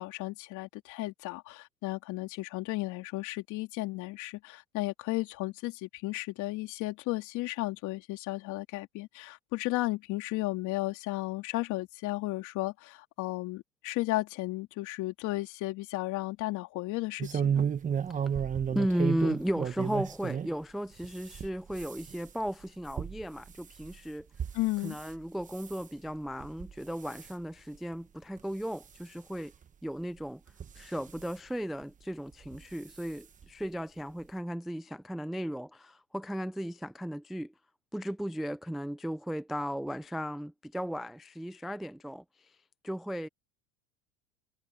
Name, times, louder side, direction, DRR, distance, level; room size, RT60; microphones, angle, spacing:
voice 1, 0.0-17.7 24.5-25.0, left 19 dB, 50° left, 3.4 m, -34 dB
sound 1, 17.2-20.5 21.0-25.1 25.5-25.9 26.4-26.7 27.0-27.3 27.9-28.0 28.4-28.5 29.6-29.7 30.5-31.3 32.4-32.6 33.0-33.1 33.4-33.5, right 8 dB, 20° right, 1.3 m, -33 dB
voice 2, 18.7-24.3 24.8-29.5 29.8-30.4 30.8-37.5 37.9-42.5 42.8-43.3, equal, ahead, 0.4 m, -35 dB
supercardioid pair, 125°, 37 cm